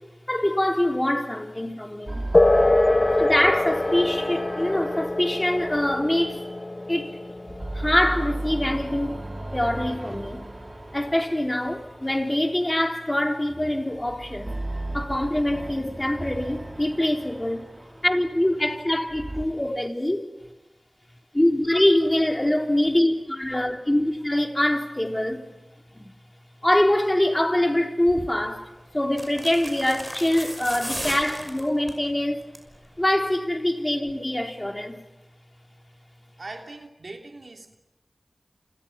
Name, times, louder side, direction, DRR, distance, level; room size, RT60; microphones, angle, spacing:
voice 1, 0.3-2.3 3.2-6.4 6.9-7.2 7.7-9.2 9.5-10.5 10.9-14.6 14.9-17.6 18.0-20.3 21.3-25.5 25.9-26.1 26.6-28.7 28.9-32.4 33.0-35.0, left 1 dB, 20° left, 3.8 m, -24 dB
sound 1, 2.1-7.0 7.4-12.7 13.4-19.5, right 2 dB, 40° right, 1.9 m, -36 dB
sound 2, 2.3-10.4, left 2 dB, 45° left, 1.5 m, -24 dB
sound 3, 28.1-28.3 29.1-32.0 32.4-32.7 33.0-33.1, equal, 10° right, 5.9 m, -35 dB
voice 2, 36.4-37.8, right 2 dB, 70° right, 3.0 m, -40 dB
29.0 x 28.0 x 6.0 m
wide cardioid pair, 60°, 0 cm